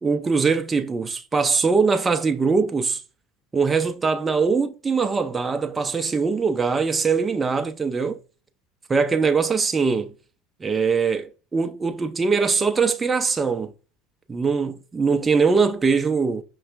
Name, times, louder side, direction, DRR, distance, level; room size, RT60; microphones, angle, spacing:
voice 1, 0.0-3.0 3.5-8.2 8.9-10.1 10.6-13.7 14.3-16.4, right 5 dB, 25° right, 0.4 m, -22 dB
5.4 x 3.0 x 2.4 m
hypercardioid pair, 85°, 0 cm